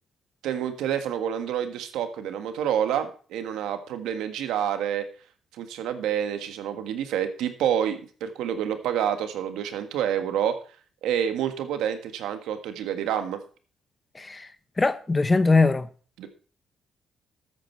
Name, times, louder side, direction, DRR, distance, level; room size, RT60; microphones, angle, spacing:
voice 1, 0.4-5.0 5.6-10.6 11.0-13.4 16.2-16.3, right 9 dB, 90° right, 1.5 m, -28 dB
voice 2, 14.1-14.5 14.8-15.9, left 3 dB, 20° left, 0.9 m, -21 dB
13.0 x 8.8 x 4.5 m
cardioid pair, 90°, 0 cm